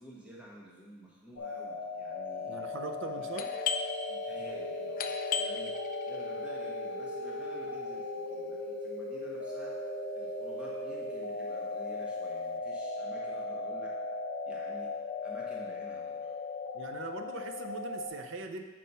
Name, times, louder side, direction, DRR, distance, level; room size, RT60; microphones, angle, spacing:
voice 1, 0.0-2.6 3.1-3.3 4.0-9.8 10.1-13.9 14.5-14.9 15.2-16.4, equal, 5° right, -6 dB, 1.2 m, -51 dB
sound 1, 1.4-18.1, left 2 dB, 80° left, 1.3 m, -37 dB
voice 2, 2.5-3.5 16.7-18.6, right 4 dB, 55° right, 6 dB, 0.5 m, -41 dB
Doorbell, 3.3-8.8, left 6 dB, 40° left, 0.3 m, -39 dB
7.3 x 4.2 x 5.4 m, 1.3 s
head